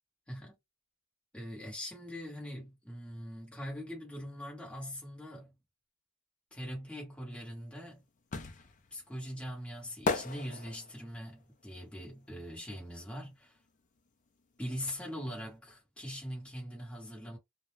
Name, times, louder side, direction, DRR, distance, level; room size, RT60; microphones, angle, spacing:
voice 1, 1.3-5.5 6.5-8.0 8.5-13.6 14.6-17.4, equal, 5° left, 1.0 m, -42 dB
sound 1, 7.4-13.3 13.6-15.2 15.4-15.5, left 3 dB, 40° left, 0.4 m, -38 dB
2.3 x 2.1 x 3.0 m
head